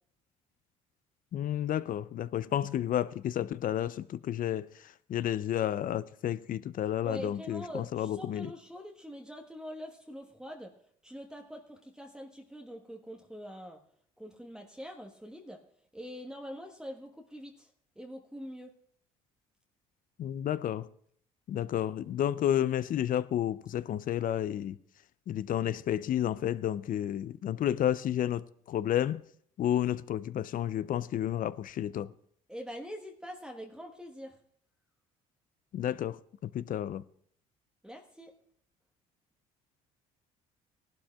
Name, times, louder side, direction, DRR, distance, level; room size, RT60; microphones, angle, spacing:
voice 1, 1.3-4.7 5.1-8.5 20.2-20.9 21.5-24.8 25.3-29.2 29.6-32.1 35.7-37.0, left 11 dB, 50° left, 0.5 m, -31 dB
voice 2, 7.0-10.7 11.0-13.8 14.2-15.6 15.9-18.7 32.5-34.4 37.8-38.4, equal, 5° right, 1.3 m, -44 dB
19.5 x 12.0 x 2.4 m
hypercardioid pair, 60°, 18 cm